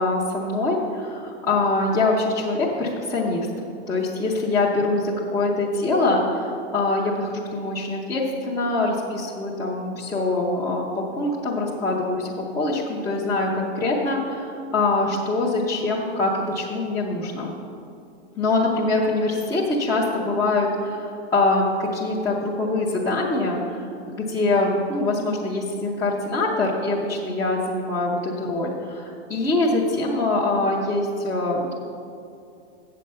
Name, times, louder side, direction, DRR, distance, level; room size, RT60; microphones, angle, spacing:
voice 1, 0.0-3.5 3.9-10.9 11.2-17.5 18.4-31.7, left 2 dB, 10° left, -6 dB, 0.5 m, -24 dB
7.7 x 7.5 x 5.4 m, 2.6 s
supercardioid pair, 155°, 33 cm